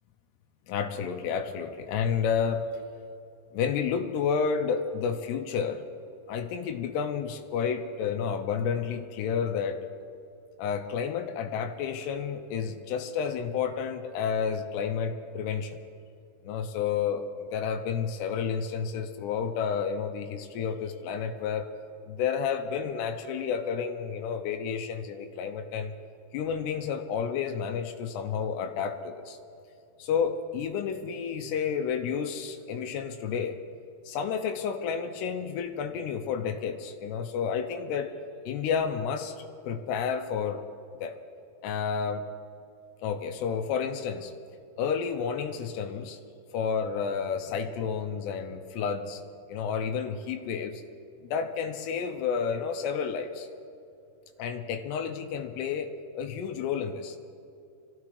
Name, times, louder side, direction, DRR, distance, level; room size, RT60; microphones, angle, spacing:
voice 1, 0.7-2.7 3.5-5.9 6.3-9.8 10.6-15.8 16.4-21.7 22.1-25.9 26.3-29.4 30.0-33.6 34.1-38.1 38.5-39.3 39.7-40.6 41.0-41.2 41.6-42.3 43.0-44.3 44.8-46.2 46.5-49.2 49.5-50.8 51.3-53.5 54.4-57.2, left 6 dB, 90° left, 6 dB, 2.9 m, -30 dB
25.0 x 15.5 x 3.3 m, 2.6 s
omnidirectional pair, 4.8 m